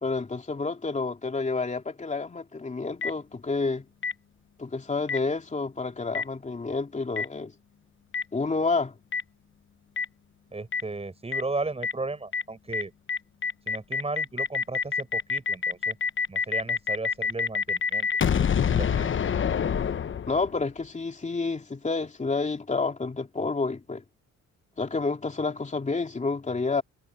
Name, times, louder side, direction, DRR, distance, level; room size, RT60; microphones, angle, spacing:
voice 1, 0.0-3.8 4.6-7.5 8.3-8.9 20.3-24.0 24.8-26.8, left 3 dB, 25° left, 2.8 m, -29 dB
Boom, 3.0-3.1 4.0-4.1 5.1-5.2 6.1-6.2 7.2-7.3 8.1-8.2 9.1-9.2 10.0-10.1 10.7-10.8 11.3-11.4 11.8-11.9 12.3-12.4 12.7-12.8 13.1-20.6, left 6 dB, 40° left, 1.0 m, -26 dB
voice 2, 10.5-12.9 13.7-16.0 16.3-18.1 18.7-19.1, right 3 dB, 20° right, 7.5 m, -35 dB
cardioid pair, 90°, 30 cm